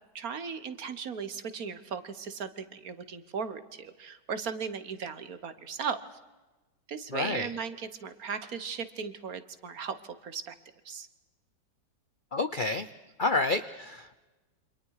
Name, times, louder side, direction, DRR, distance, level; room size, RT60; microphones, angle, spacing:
voice 1, 0.1-6.0 6.9-9.9 10.2-10.5 10.8-11.1, right 6 dB, 50° right, 12 dB, 1.6 m, -37 dB
voice 2, 7.1-7.5 12.3-12.9 13.2-14.2, left 3 dB, 70° left, 11 dB, 0.4 m, -29 dB
28.5 x 25.5 x 4.8 m, 1.2 s
omnidirectional pair, 2.0 m